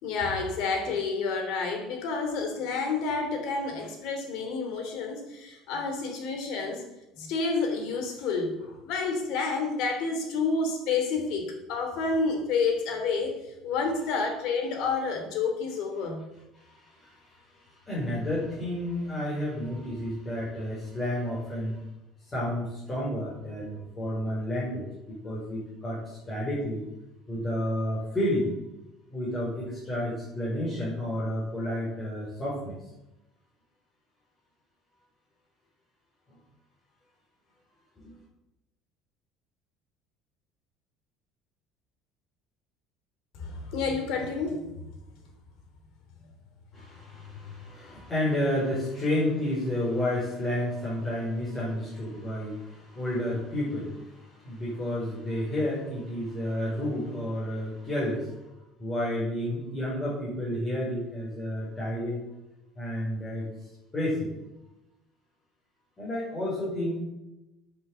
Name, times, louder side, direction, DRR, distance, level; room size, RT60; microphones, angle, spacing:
voice 1, 0.0-6.8 7.1-16.3 19.5-19.6 43.3-44.9, left 4 dB, 65° left, 4 dB, 3.2 m, -29 dB
voice 2, 16.5-21.8 22.2-26.8 27.3-28.5 29.1-32.8 38.0-38.2 46.7-58.4 58.8-62.2 62.8-63.5 63.9-64.3 66.0-67.0, left 1 dB, 20° left, -7 dB, 5.7 m, -31 dB
9.4 x 8.7 x 8.2 m, 0.94 s
cardioid pair, 145°, 0 cm